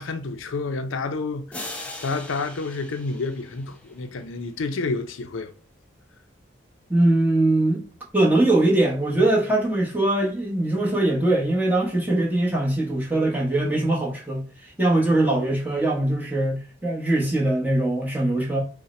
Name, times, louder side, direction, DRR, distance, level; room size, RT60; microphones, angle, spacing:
voice 1, 0.0-5.5, left 3 dB, 85° left, 0.5 m, -30 dB
sound 1, 1.5-4.4, left 2 dB, 5° left, 0.5 m, -40 dB
voice 2, 6.9-7.8 8.1-14.4 14.8-18.6, right 1 dB, 10° right, 1.1 m, -21 dB
5.6 x 2.2 x 4.2 m
head